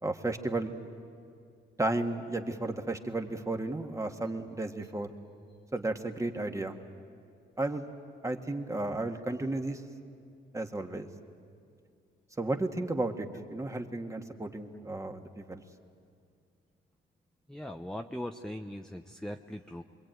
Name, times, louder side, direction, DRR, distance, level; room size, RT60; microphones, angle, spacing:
voice 1, 0.0-0.8 1.8-5.1 5.7-6.8 7.6-7.9 8.2-9.8 10.5-11.1 12.4-15.6, right 2 dB, 15° right, 5 dB, 1.8 m, -33 dB
voice 2, 17.5-19.8, left 1 dB, 5° left, 5 dB, 0.8 m, -40 dB
26.5 x 22.0 x 9.2 m, 2.4 s
cardioid pair, 90°, 20 cm